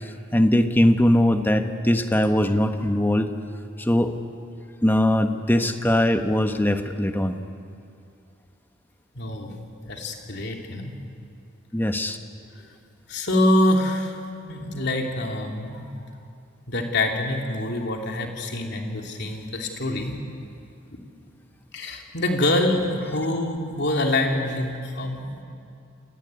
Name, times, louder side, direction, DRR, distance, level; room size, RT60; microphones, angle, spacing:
voice 1, 0.0-3.3 3.8-4.1 4.8-7.4 11.7-12.2, left 1 dB, 10° left, 7 dB, 1.2 m, -21 dB
voice 2, 9.1-9.5 9.8-11.0 13.1-15.9 16.7-20.2 21.7-25.4, left 1 dB, 55° left, 2 dB, 3.2 m, -25 dB
27.5 x 18.5 x 9.7 m, 2.4 s
head